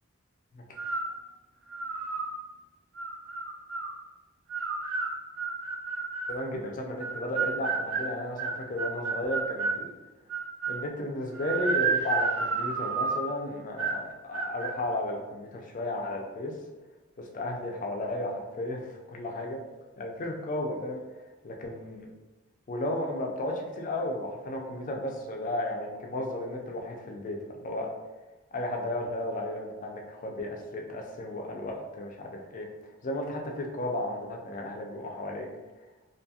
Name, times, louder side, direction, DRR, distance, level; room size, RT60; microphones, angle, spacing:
sound 1, 0.8-1.2 1.7-2.3 3.0-3.9 4.5-6.4 7.0-9.8 10.3-10.9 11.3-13.3 13.8-14.1 14.3-14.8, right 4 dB, 60° right, 0.3 m, -31 dB
voice 1, 6.3-9.9 10.7-16.6 17.2-19.6 20.0-21.0 21.4-22.1 22.7-27.4 27.6-27.9 28.5-32.7 33.0-35.5, left 1 dB, 35° left, 1 dB, 0.4 m, -34 dB
2.7 x 2.3 x 2.7 m, 1.1 s
head